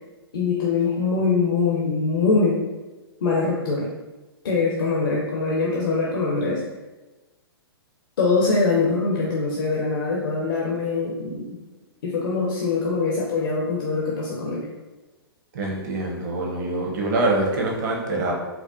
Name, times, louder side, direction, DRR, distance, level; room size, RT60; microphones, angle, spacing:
voice 1, 0.3-2.6 3.2-3.9 4.4-6.6 8.2-11.6 12.0-14.7, left 4 dB, 60° left, -3 dB, 0.6 m, -23 dB
voice 2, 15.5-18.3, right 2 dB, 50° right, 0 dB, 0.8 m, -24 dB
4.5 x 2.1 x 2.5 m, 1.1 s
figure-of-eight pair, 115°, 13 cm